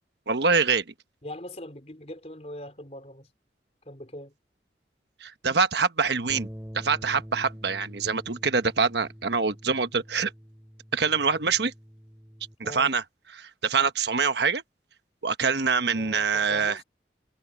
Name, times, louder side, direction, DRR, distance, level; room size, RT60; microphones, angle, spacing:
voice 1, 0.3-0.8 5.2-6.5 6.7-10.3 10.9-11.7 12.6-13.0 13.3-14.6 15.2-16.8, right 5 dB, 75° right, 1.1 m, -25 dB
voice 2, 1.2-3.3 3.9-4.3 12.6-12.9 15.9-16.8, left 1 dB, 35° left, 4.1 m, -41 dB
sound 1, 6.3-12.5, equal, 10° right, 2.3 m, -45 dB
head